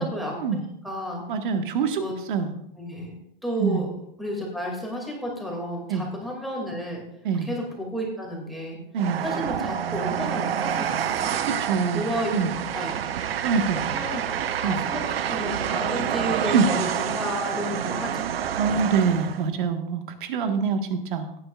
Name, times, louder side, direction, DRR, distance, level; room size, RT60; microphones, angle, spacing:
voice 1, 0.0-0.3 0.8-1.2 1.9-2.1 2.8-3.1 3.4-3.9 4.2-7.0 7.4-8.8 9.2-11.5 11.9-12.3 12.7-12.9 13.9-14.2 14.6-18.3, equal, ahead, -2 dB, 2.4 m, -32 dB
voice 2, 1.3-2.0 2.3-2.5 3.6-3.8 5.9-6.0 7.2-7.5 8.9-9.2 11.4-12.1 12.3-12.5 13.4-13.9 14.6-14.8 16.5-16.7 18.6-21.4, right 6 dB, 60° right, 6 dB, 1.6 m, -25 dB
Train, 9.0-19.5, right 9 dB, 90° right, 0.9 m, -28 dB
17.0 x 9.5 x 2.4 m, 0.75 s
hypercardioid pair, 155°, 29 cm